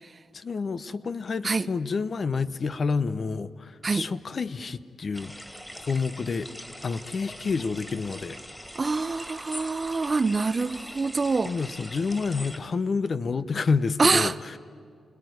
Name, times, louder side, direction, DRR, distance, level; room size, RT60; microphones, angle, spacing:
voice 1, 0.3-5.3 5.9-6.5 6.8-8.4 11.4-14.6, left 4 dB, 50° left, 0.9 m, -29 dB
sound 1, 5.1-12.6, equal, 10° left, 2.4 m, -42 dB
voice 2, 8.8-11.5 14.0-14.3, right 4 dB, 40° right, 0.7 m, -25 dB
29.5 x 19.5 x 9.5 m
cardioid pair, 80°, 0 cm